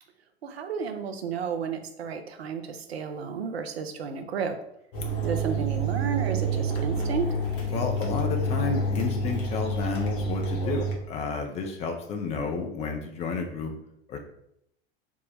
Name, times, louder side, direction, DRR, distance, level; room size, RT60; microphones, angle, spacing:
voice 1, 0.4-4.6 5.2-7.3 11.6-11.7, right 6 dB, 70° right, 7 dB, 0.5 m, -32 dB
sound 1, 4.9-10.9, right 1 dB, 55° left, 1.0 m, -28 dB
voice 2, 7.7-13.7 14.1-14.2, left 4 dB, 20° left, 4 dB, 0.4 m, -31 dB
3.4 x 2.1 x 4.0 m, 0.77 s
figure-of-eight pair, 80°, 32 cm